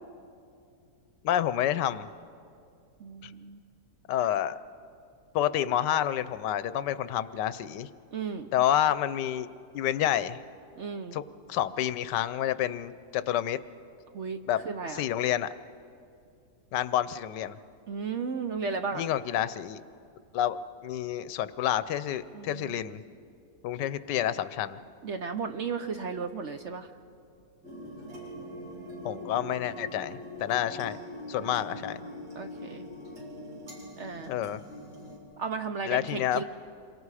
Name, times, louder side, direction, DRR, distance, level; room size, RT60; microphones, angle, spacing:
voice 1, 1.2-2.1 3.2-3.3 4.1-4.6 5.3-7.9 8.5-9.5 9.7-10.4 11.1-11.2 11.5-13.6 14.5-14.6 14.9-15.5 16.7-17.6 18.9-19.8 20.3-20.6 20.8-23.0 23.6-24.8 29.0-31.0 31.3-32.0 34.3-34.6 35.9-36.4, left 11 dB, 85° left, 15 dB, 1.3 m, -29 dB
voice 2, 3.0-3.6 8.1-8.5 10.8-11.2 14.1-14.4 14.6-15.0 17.9-19.1 22.3-22.8 25.0-26.9 31.4-31.9 32.3-32.9 34.0-34.3 35.4-36.4, right 5 dB, 55° right, 7 dB, 0.9 m, -35 dB
sound 1, 27.6-35.2, left 1 dB, 70° right, 3.7 m, -43 dB
27.5 x 23.0 x 4.9 m, 2.4 s
omnidirectional pair, 1.8 m